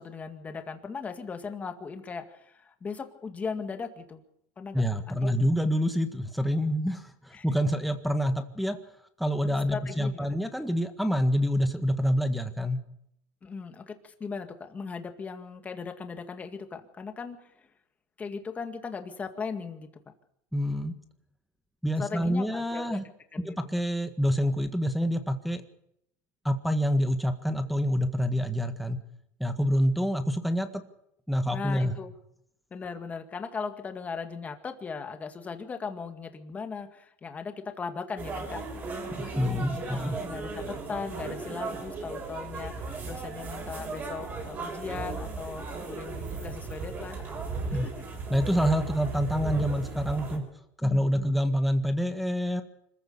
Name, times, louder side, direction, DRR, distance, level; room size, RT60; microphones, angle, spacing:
voice 1, 0.0-4.2 4.6-5.4 7.3-7.5 9.4-10.3 13.4-17.5 18.2-20.1 22.0-23.0 23.3-23.6 31.5-32.1 32.7-47.4 47.7-47.9 50.8-51.3, left 5 dB, 20° left, 6 dB, 2.1 m, -38 dB
voice 2, 4.7-8.8 9.2-12.8 20.5-20.9 21.8-23.0 23.4-25.6 26.4-29.0 29.4-30.7 31.3-31.9 39.2-40.2 47.7-47.9 48.3-50.5 50.8-52.6, equal, ahead, 6 dB, 1.6 m, -27 dB
sound 1, 38.2-50.4, right 4 dB, 25° right, 7.3 m, -36 dB
26.0 x 14.5 x 6.9 m, 0.77 s
supercardioid pair, 145°, 8 cm